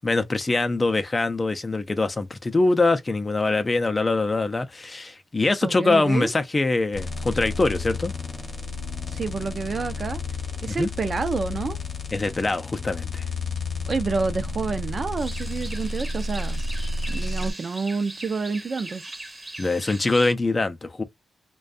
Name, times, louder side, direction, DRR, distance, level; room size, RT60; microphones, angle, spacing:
voice 1, 0.0-8.1 10.7-10.9 12.1-13.2 19.6-21.0, left 3 dB, 30° left, 0.4 m, -23 dB
voice 2, 5.6-6.3 9.1-10.2 10.6-11.8 13.9-16.6 17.1-19.1, right 4 dB, 50° right, 0.5 m, -28 dB
sound 1, 6.9-17.5, left 3 dB, 55° left, 0.8 m, -31 dB
sound 2, 15.2-20.3, right 1 dB, 20° right, 0.8 m, -40 dB
2.5 x 2.2 x 2.4 m
supercardioid pair, 55°, 0 cm